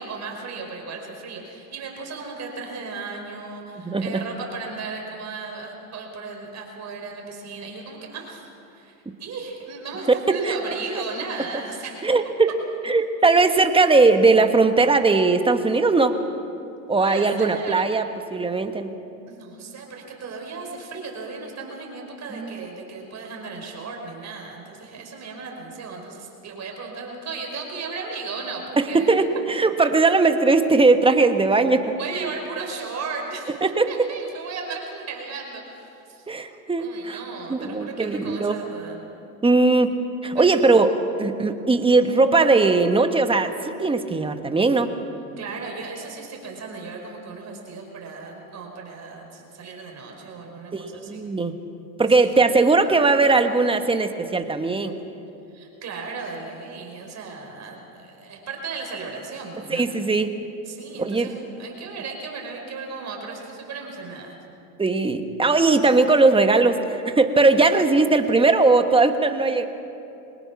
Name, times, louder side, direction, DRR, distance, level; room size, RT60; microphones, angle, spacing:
voice 1, 0.0-8.9 9.2-12.1 17.0-17.8 19.3-29.1 32.0-36.3 36.8-39.0 40.4-40.6 45.4-51.2 52.2-52.3 55.5-59.9 60.7-64.4, right 4 dB, 35° right, 1 dB, 5.2 m, -36 dB
voice 2, 3.8-4.2 10.3-10.6 10.9-11.0 12.0-12.5 12.8-16.2 16.9-18.9 22.3-22.6 28.8-32.3 33.6-33.9 36.3-37.2 37.5-38.5 39.4-40.0 40.2-44.9 50.7-51.6 52.0-54.9 59.7-60.4 61.0-61.3 64.8-69.6, right 3 dB, 10° right, 7 dB, 1.3 m, -19 dB
24.0 x 19.5 x 6.0 m, 2.8 s
supercardioid pair, 105°, 44 cm